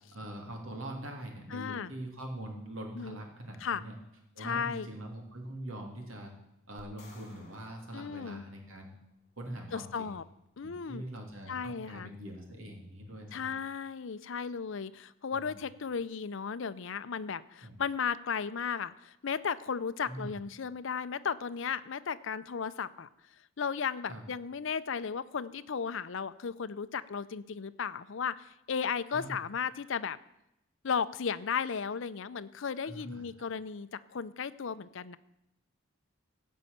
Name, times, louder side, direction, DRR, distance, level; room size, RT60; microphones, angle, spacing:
voice 1, 0.1-4.0 4.3-6.3 6.7-8.9 9.4-10.1 10.6-13.5 15.3-15.6 17.6-17.8 20.1-20.4 24.1-24.2 29.1-29.4 32.8-33.2, right 1 dB, 75° right, 2 dB, 2.9 m, -43 dB
voice 2, 1.5-1.9 2.9-3.2 3.6-3.8 4.4-4.9 7.9-8.4 9.7-10.2 10.6-11.0 11.5-12.1 13.3-23.1 23.6-30.2 30.8-35.2, left 6 dB, 65° left, 14 dB, 0.5 m, -35 dB
sound 1, 6.8-9.2, left 2 dB, 35° left, 2.5 m, -58 dB
16.0 x 5.5 x 8.6 m, 0.86 s
head